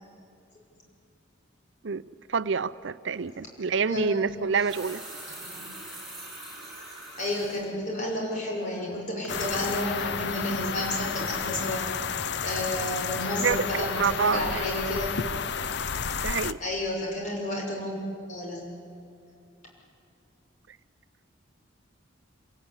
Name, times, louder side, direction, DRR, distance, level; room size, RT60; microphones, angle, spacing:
voice 1, 2.3-5.0 13.4-14.7 16.2-16.6, right 5 dB, 65° right, 15 dB, 0.6 m, -27 dB
sound 1, 3.1-3.3 4.3-7.6 8.1-8.2 8.7-9.0 9.2-9.4, right 1 dB, ahead, 7.8 m, -43 dB
voice 2, 3.7-4.3 5.4-5.6 7.2-11.8 12.4-15.1 16.6-18.0 18.3-18.7, left 1 dB, 40° left, -2 dB, 6.4 m, -31 dB
sound 2, 9.3-16.5, left 6 dB, 55° left, 0.6 m, -31 dB
26.0 x 18.5 x 9.8 m, 2.4 s
head